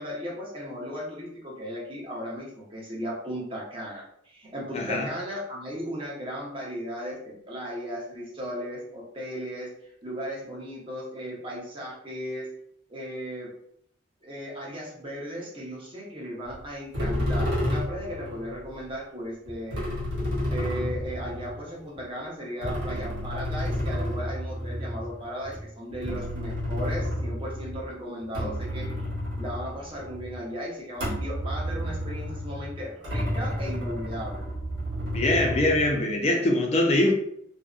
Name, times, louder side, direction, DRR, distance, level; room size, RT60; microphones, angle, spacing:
voice 1, 0.0-12.5 12.9-13.5 14.2-19.9 20.4-28.9 29.4-34.4, equal, 30° right, -4 dB, 0.7 m, -36 dB
voice 2, 4.7-5.1 35.1-37.1, left 1 dB, 35° left, 1 dB, 0.5 m, -23 dB
sound 1, 16.5-16.6 16.9-18.6 19.5-22.0 22.6-27.8 28.2-30.4 31.0-36.0, equal, 85° right, 1.1 m, -31 dB
2.6 x 2.1 x 2.4 m, 0.69 s
head